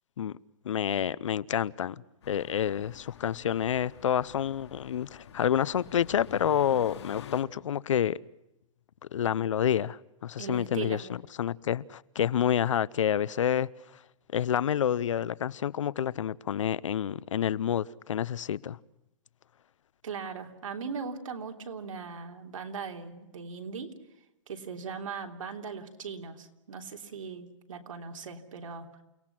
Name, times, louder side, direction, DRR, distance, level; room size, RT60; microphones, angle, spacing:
voice 1, 0.6-8.2 9.1-13.7 14.3-18.8, left 9 dB, 75° left, 0.8 m, -28 dB
sound 1, 2.2-7.4, left 8 dB, 55° left, 2.5 m, -48 dB
voice 2, 10.4-11.0 20.0-23.9 24.5-28.9, right 5 dB, 90° right, 3.3 m, -39 dB
29.5 x 18.0 x 6.0 m
hypercardioid pair, 175°, 16 cm